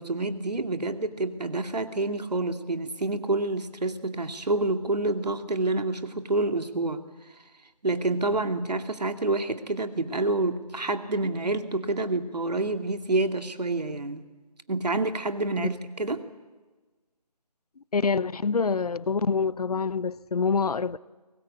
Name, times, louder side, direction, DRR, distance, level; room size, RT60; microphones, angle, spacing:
voice 1, 0.0-7.0 7.8-14.2 14.7-16.2, right 2 dB, 90° right, 2.4 m, -28 dB
voice 2, 17.9-21.0, left 5 dB, 70° left, 0.7 m, -26 dB
23.0 x 19.5 x 8.7 m
figure-of-eight pair, 170°, 20 cm